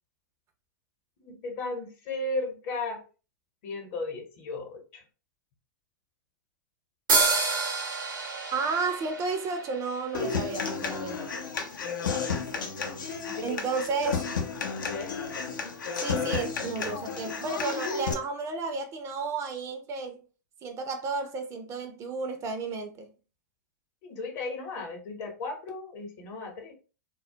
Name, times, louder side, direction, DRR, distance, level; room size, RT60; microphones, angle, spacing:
voice 1, 1.2-3.0 3.6-5.0 13.3-13.6 14.9-15.1 24.0-26.7, left 2 dB, 50° left, 0.9 m, -35 dB
sound 1, 7.1-10.6, right 4 dB, 85° right, 0.7 m, -29 dB
voice 2, 8.5-11.3 13.4-14.3 16.0-20.2 20.6-23.1, right 4 dB, 30° right, 0.4 m, -32 dB
Human voice / Acoustic guitar, 10.1-18.1, left 5 dB, 80° left, 0.5 m, -32 dB
2.2 x 2.0 x 2.7 m
hypercardioid pair, 110°, 10 cm